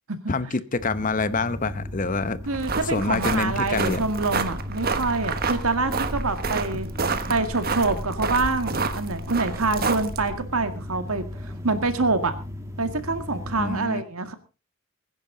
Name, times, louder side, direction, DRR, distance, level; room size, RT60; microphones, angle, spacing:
voice 1, 0.3-2.4 2.9-4.1 13.6-14.0, left 3 dB, 40° left, 14 dB, 0.8 m, -26 dB
sound 1, 0.8-13.8, left 1 dB, 15° right, 1.8 m, -36 dB
sound 2, 2.4-10.4, right 4 dB, 45° right, 1.2 m, -29 dB
voice 2, 2.5-6.9 7.3-12.3 12.8-14.3, right 3 dB, 85° right, 8 dB, 2.0 m, -26 dB
21.0 x 10.5 x 3.9 m, 0.34 s
head